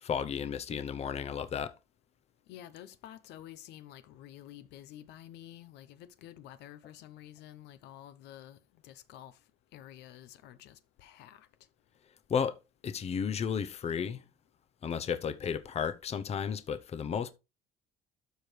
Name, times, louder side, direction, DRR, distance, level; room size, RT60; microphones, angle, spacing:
voice 1, 0.0-1.7 12.3-12.6 12.8-14.2 14.8-17.3, left 7 dB, 40° left, 0.8 m, -33 dB
voice 2, 2.5-9.4 9.7-11.5, left 12 dB, 85° left, 0.8 m, -50 dB
12.5 x 4.5 x 3.3 m
cardioid pair, 110°, 17 cm